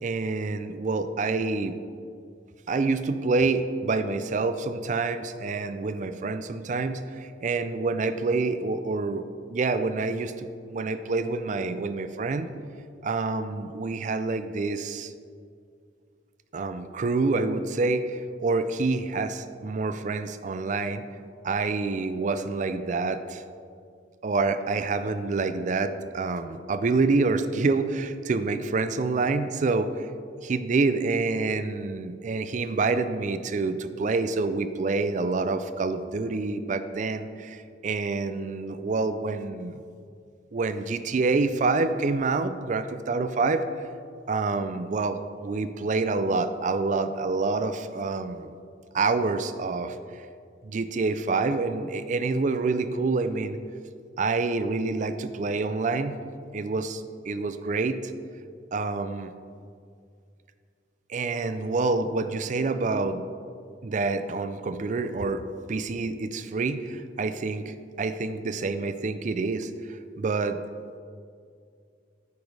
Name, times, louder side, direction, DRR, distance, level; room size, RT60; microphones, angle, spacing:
voice 1, 0.0-1.7 2.7-9.2 9.5-12.5 13.0-15.1 16.5-21.0 21.4-23.4 24.2-30.1 30.4-39.8 40.5-43.6 44.3-48.5 48.9-50.0 50.6-53.6 54.2-56.2 56.5-58.0 58.7-59.3 61.1-63.2 63.8-65.4 65.7-69.7 70.2-70.6, right 3 dB, 45° right, 11 dB, 0.4 m, -27 dB
9.3 x 5.0 x 4.7 m, 2.3 s
head